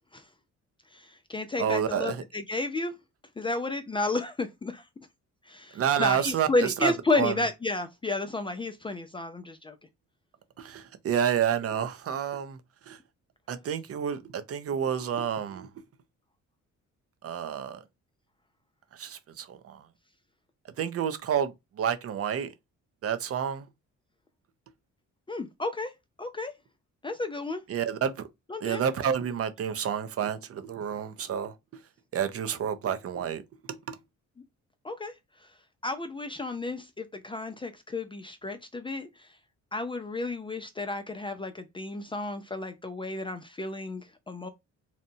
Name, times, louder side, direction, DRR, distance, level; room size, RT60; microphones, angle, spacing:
voice 1, 0.9-2.9 3.4-4.8 5.5-9.8 25.3-25.9 26.2-26.5 27.0-27.6 28.5-28.8 34.8-35.1 35.8-39.3 39.7-44.5, left 2 dB, 20° left, 0.3 m, -32 dB
voice 2, 1.6-2.2 5.7-7.4 10.6-12.6 12.9-13.0 13.5-15.7 17.2-17.8 18.9-19.8 20.8-22.5 23.0-23.7 27.7-28.1 28.6-31.5 32.1-33.4 33.9-34.0, right 8 dB, 50° right, 0.5 m, -29 dB
2.8 x 2.1 x 2.7 m
cardioid pair, 90°, 30 cm